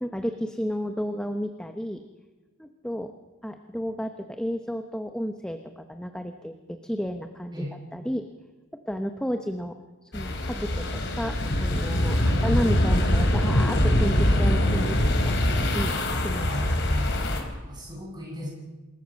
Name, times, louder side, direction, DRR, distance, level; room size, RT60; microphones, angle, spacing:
voice 1, 0.0-2.0 2.6-3.1 3.4-7.7 7.9-8.3 8.8-9.8 10.0-16.6, equal, 5° left, 6 dB, 1.0 m, -32 dB
sound 1, 10.1-17.4, left 1 dB, 50° left, 3.8 m, -23 dB
voice 2, 16.4-17.1 17.7-18.5, left 1 dB, 20° right, -3 dB, 8.0 m, -36 dB
27.0 x 21.5 x 6.5 m, 1.2 s
head